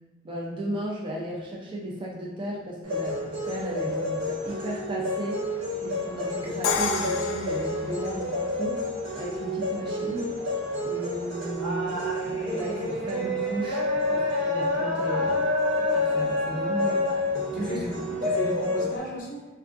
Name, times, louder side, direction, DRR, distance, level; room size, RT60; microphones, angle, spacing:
voice 1, 0.2-8.8 9.2-10.3 10.8-12.0 12.2-13.8 14.1-15.4 15.9-17.2 17.5-17.8 18.2-18.3 18.7-18.8, right 1 dB, 25° right, -3 dB, 0.4 m, -34 dB
sound 1, 2.8-19.0, left 1 dB, 85° right, 1.1 m, -28 dB
Crash cymbal, 6.6-8.6, left 5 dB, 85° left, 0.3 m, -29 dB
voice 2, 17.3-19.5, equal, 45° left, -2 dB, 0.6 m, -35 dB
3.5 x 2.3 x 2.5 m, 1.2 s
head